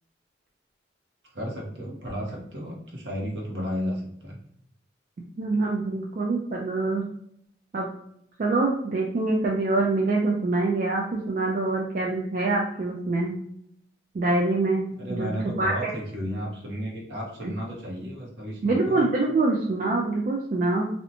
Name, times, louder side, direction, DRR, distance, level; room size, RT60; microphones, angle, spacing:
voice 1, 1.3-4.4 15.0-19.1, equal, 70° right, -2 dB, 0.9 m, -33 dB
voice 2, 5.4-7.0 7.7-7.9 8.4-13.4 14.1-15.3 15.6-15.7 18.6-20.9, right 2 dB, 45° right, -2 dB, 0.3 m, -25 dB
2.7 x 2.1 x 2.7 m, 0.70 s
head